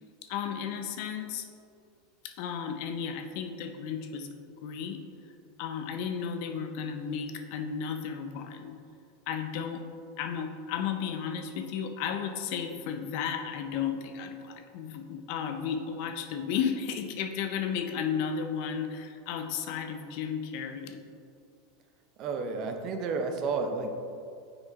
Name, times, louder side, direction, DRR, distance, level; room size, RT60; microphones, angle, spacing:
voice 1, 0.2-1.5 2.2-4.3 4.6-5.0 5.6-8.8 9.3-9.8 10.2-21.0, left 7 dB, 60° left, 6 dB, 0.6 m, -34 dB
voice 2, 22.2-23.9, right 4 dB, 50° right, 6 dB, 0.7 m, -31 dB
6.4 x 4.5 x 4.1 m, 2.4 s
supercardioid pair, 110°, 0 cm